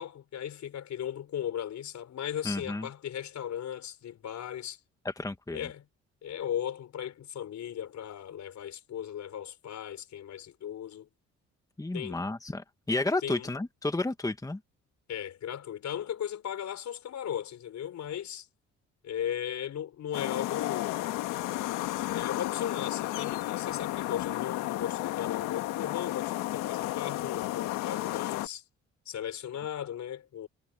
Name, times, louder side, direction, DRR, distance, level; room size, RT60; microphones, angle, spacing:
voice 1, 0.0-4.8 5.5-5.9 6.2-11.1 11.9-12.2 13.2-13.5 15.1-18.5 19.0-21.0 22.1-28.6 29.1-30.5, left 10 dB, 65° left, 4.4 m, -37 dB
voice 2, 2.4-2.9 5.0-5.6 11.8-14.6, left 2 dB, 10° left, 1.5 m, -31 dB
sound 1, 20.1-28.5, left 16 dB, 90° left, 1.5 m, -33 dB
supercardioid pair, 70°, 30 cm